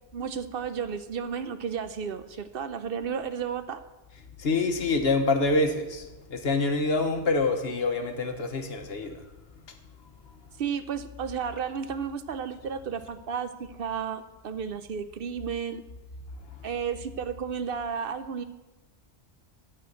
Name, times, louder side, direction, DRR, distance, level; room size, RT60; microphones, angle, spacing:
voice 1, 0.1-3.8 10.6-15.8 16.6-18.4, right 7 dB, 60° right, 11 dB, 0.7 m, -33 dB
voice 2, 4.4-9.2, left 3 dB, 60° left, 6 dB, 1.3 m, -26 dB
12.5 x 4.4 x 8.2 m, 1.1 s
omnidirectional pair, 1.2 m